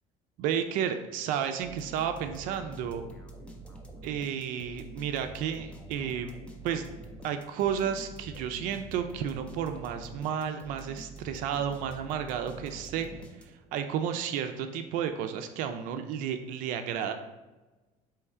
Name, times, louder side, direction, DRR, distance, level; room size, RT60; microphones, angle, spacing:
voice 1, 0.4-3.1 4.0-6.3 6.6-6.9 7.2-13.1 13.7-17.1, right 8 dB, 65° right, 7 dB, 0.4 m, -32 dB
sound 1, 1.6-13.8, right 2 dB, 10° left, 0.3 m, -46 dB
4.3 x 3.1 x 3.5 m, 1.2 s
cardioid pair, 180°, 15 cm